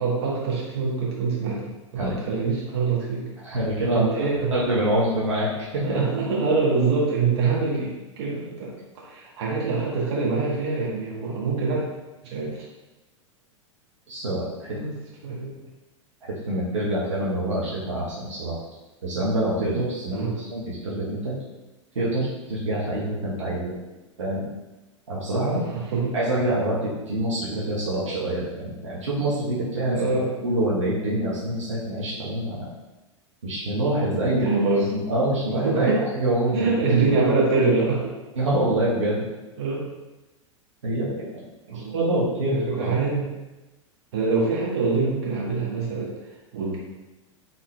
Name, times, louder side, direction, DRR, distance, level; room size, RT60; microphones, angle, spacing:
voice 1, 0.0-3.2 3.9-4.5 5.8-7.9 8.2-11.8 12.3-12.6 14.7-14.9 15.2-15.6 20.1-20.3 25.4-26.2 29.9-30.4 34.3-34.9 35.6-36.0 36.5-38.1 39.6-39.8 41.7-42.0 42.5-43.3 44.1-46.1 46.5-46.8, right 4 dB, 55° right, -4 dB, 1.5 m, -24 dB
voice 2, 3.4-6.0 14.1-14.8 16.2-18.5 19.0-21.3 21.9-23.8 24.2-24.4 25.1-25.6 26.1-30.0 30.4-32.7 33.4-34.5 34.8-37.3 38.3-39.2 40.8-41.4 41.7-42.9, right 1 dB, 75° right, -7 dB, 1.3 m, -26 dB
4.4 x 3.7 x 3.2 m, 1.1 s
figure-of-eight pair, 95°, 16 cm